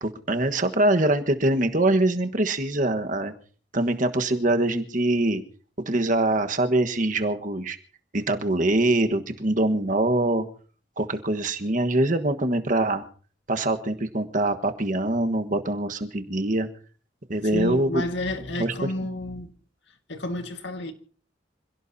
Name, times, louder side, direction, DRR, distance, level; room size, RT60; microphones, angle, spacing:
voice 1, 0.0-3.3 3.7-5.4 5.9-7.8 8.1-10.4 11.0-13.0 13.5-16.7 17.3-18.0 18.6-18.7, right 1 dB, 45° right, 1.4 m, -23 dB
voice 2, 17.5-19.5 20.1-20.9, left 1 dB, 70° left, 1.8 m, -30 dB
26.5 x 17.0 x 2.8 m
head